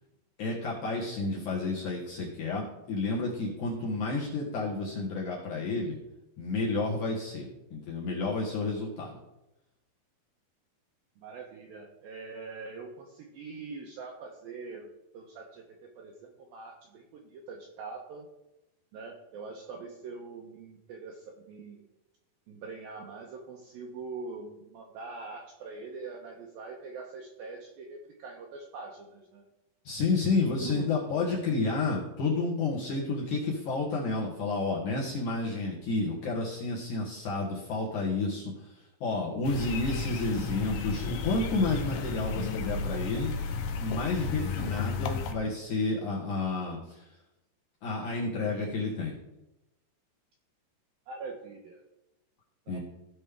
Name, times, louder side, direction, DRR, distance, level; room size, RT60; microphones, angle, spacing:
voice 1, 0.4-6.0 6.4-9.2 29.9-38.7 39.0-43.3 43.8-47.1 47.8-49.2 52.7-52.8, left 3 dB, 60° left, -5 dB, 2.2 m, -30 dB
voice 2, 11.2-14.9 15.1-18.3 18.9-21.8 22.5-29.4 30.3-31.2 51.1-51.8 52.7-52.8, right 4 dB, 80° right, 1 dB, 2.1 m, -43 dB
sound 1, 39.4-45.3, left 5 dB, 85° left, 3.3 m, -33 dB
16.0 x 5.3 x 3.5 m, 0.93 s
omnidirectional pair, 5.2 m